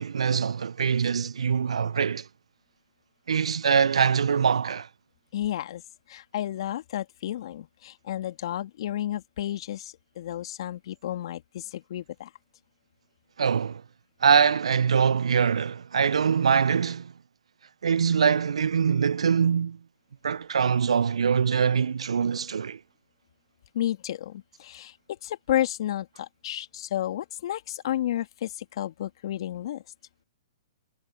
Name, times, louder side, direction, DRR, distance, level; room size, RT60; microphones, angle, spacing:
voice 1, 0.0-2.2 3.3-4.9 13.4-13.8 14.2-17.1 17.8-19.8 20.2-22.8, right 6 dB, 75° right, 0.4 m, -23 dB
voice 2, 5.3-5.8 6.1-12.3 23.7-29.8, left 12 dB, 55° left, 2.8 m, -32 dB
hypercardioid pair, 120°, 3 cm